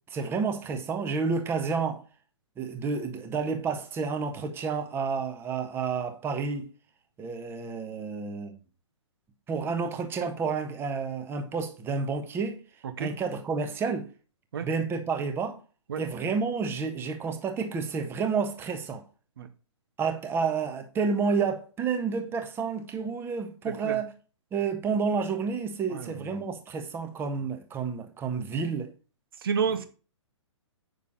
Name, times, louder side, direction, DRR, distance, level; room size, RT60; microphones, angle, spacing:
voice 1, 0.1-2.0 2.6-6.7 7.2-8.6 9.5-12.6 13.0-14.1 14.6-15.6 16.0-19.0 20.0-24.1 24.5-28.9, right 5 dB, 15° right, 1.4 m, -30 dB
voice 2, 23.7-24.0 25.9-26.4 29.4-29.8, right 6 dB, 50° right, 1.4 m, -30 dB
8.7 x 6.8 x 4.1 m
figure-of-eight pair, 120°, 16 cm